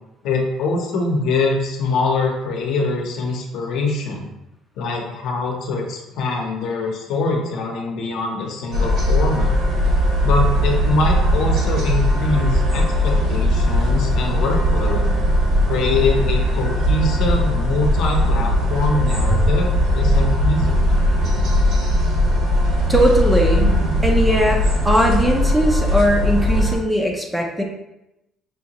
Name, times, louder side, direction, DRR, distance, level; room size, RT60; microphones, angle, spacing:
voice 1, 0.2-4.3 4.8-9.5 10.2-15.2 15.7-21.4, left 3 dB, 60° left, 1 dB, 0.8 m, -23 dB
sound 1, 8.7-26.8, equal, 50° right, 0.9 m, -19 dB
voice 2, 22.9-23.8 24.0-27.6, equal, 5° right, 1 dB, 0.4 m, -19 dB
5.2 x 2.8 x 2.9 m, 0.91 s
cardioid pair, 160°, 0 cm